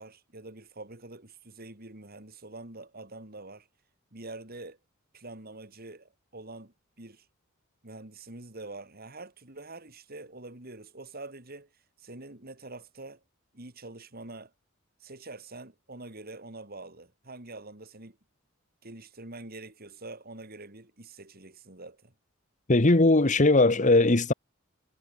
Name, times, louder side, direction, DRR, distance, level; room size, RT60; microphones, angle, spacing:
voice 1, 0.0-3.7 4.1-4.8 5.1-7.3 7.8-13.2 13.5-14.5 15.0-18.2 18.8-22.1, right 2 dB, 45° right, 3.2 m, -45 dB
voice 2, 22.7-24.3, left 2 dB, 35° left, 1.2 m, -20 dB
head